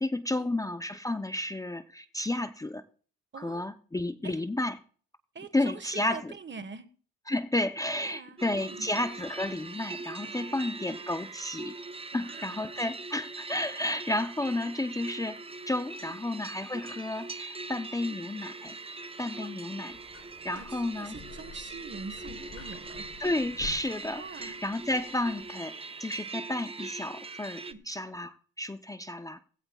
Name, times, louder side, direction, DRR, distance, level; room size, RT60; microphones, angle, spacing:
voice 1, 0.0-2.8 3.4-4.8 5.5-6.2 7.3-11.7 12.1-15.4 15.7-18.7 19.2-20.0 20.4-21.2 23.2-29.4, left 1 dB, 10° left, 10 dB, 0.7 m, -32 dB
voice 2, 3.3-3.7 4.2-4.4 5.3-6.9 8.0-8.9 10.2-10.5 12.1-12.5 16.1-16.2 18.0-18.2 19.4-19.5 20.5-23.1 24.1-24.6 27.6-27.8, right 5 dB, 40° right, 10 dB, 1.5 m, -45 dB
sound 1, 8.4-27.7, right 3 dB, 20° right, 0.8 m, -42 dB
sound 2, 19.9-25.5, left 4 dB, 45° left, 3.8 m, -49 dB
16.5 x 16.0 x 2.4 m, 0.43 s
cardioid pair, 90°, 30 cm